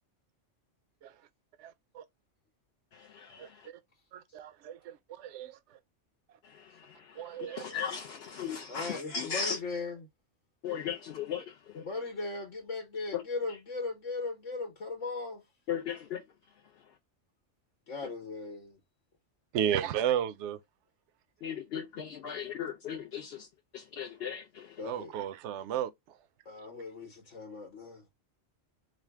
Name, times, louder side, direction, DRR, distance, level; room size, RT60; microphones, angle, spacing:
voice 1, 1.6-2.0 3.4-3.5 4.1-5.6 7.2-7.6 19.5-20.6 24.8-26.2, right 10 dB, 75° right, 0.9 m, -33 dB
voice 2, 2.9-3.7 6.4-9.6 10.6-11.9 13.1-13.2 15.7-16.2 16.7-16.9 21.4-23.5 23.7-25.0, left 7 dB, 60° left, 0.8 m, -38 dB
voice 3, 8.7-10.0 11.8-15.4 17.9-18.8 24.8-25.1 26.4-28.1, left 3 dB, 90° left, 1.5 m, -38 dB
4.9 x 2.1 x 3.4 m
omnidirectional pair, 1.2 m